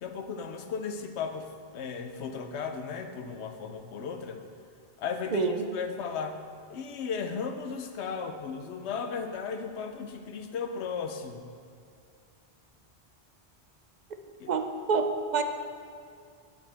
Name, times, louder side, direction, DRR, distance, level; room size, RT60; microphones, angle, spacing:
voice 1, 0.0-4.4 5.0-6.4 6.7-11.5 14.4-14.5, left 5 dB, 90° left, 6 dB, 1.0 m, -35 dB
voice 2, 5.3-5.7 14.5-15.4, right 4 dB, 50° right, 7 dB, 0.6 m, -27 dB
9.5 x 7.7 x 3.4 m, 2.3 s
omnidirectional pair, 1.1 m